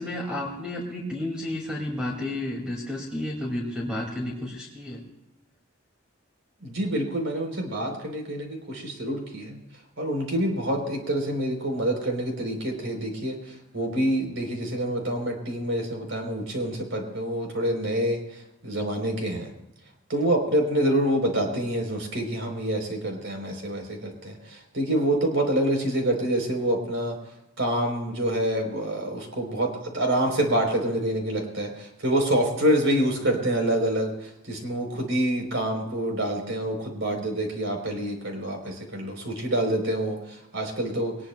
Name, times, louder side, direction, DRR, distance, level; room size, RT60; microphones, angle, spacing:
voice 1, 0.0-5.0, left 1 dB, 5° right, -3 dB, 2.1 m, -31 dB
voice 2, 6.6-9.6 10.0-19.5 20.1-27.2 27.6-41.2, right 1 dB, 70° right, 2 dB, 3.6 m, -27 dB
22.5 x 19.0 x 2.2 m, 0.91 s
head